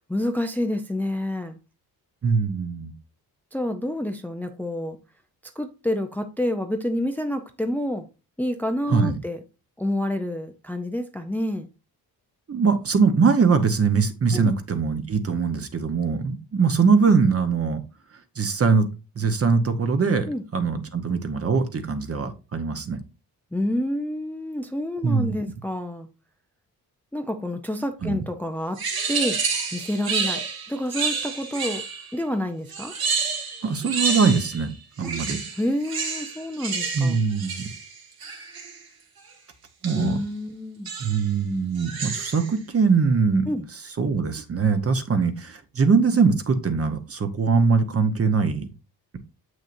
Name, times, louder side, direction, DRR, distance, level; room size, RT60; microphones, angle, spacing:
voice 1, 0.0-1.6 3.5-5.0 5.6-8.0 8.4-9.4 9.8-11.7 14.3-14.5 20.3-20.4 23.5-26.1 27.1-28.8 29.1-29.4 29.7-31.8 32.1-32.9 35.0-35.1 35.6-37.2 39.9-40.9 43.5-43.7, left 1 dB, 5° left, 7 dB, 0.6 m, -28 dB
voice 2, 2.2-2.9 8.9-9.2 12.5-17.8 18.4-18.9 19.2-23.0 25.0-25.3 28.0-28.2 33.6-34.7 35.0-35.4 36.9-37.7 39.8-40.2 41.0-43.5 44.0-48.7, right 5 dB, 35° right, 9 dB, 1.0 m, -22 dB
sound 1, 28.8-32.1 32.7-34.7 35.0-38.8 39.8-40.2 40.8-41.3 41.7-42.5, right 5 dB, 65° right, 2.2 m, -29 dB
7.4 x 6.3 x 2.6 m, 0.30 s
wide cardioid pair, 120°, 38 cm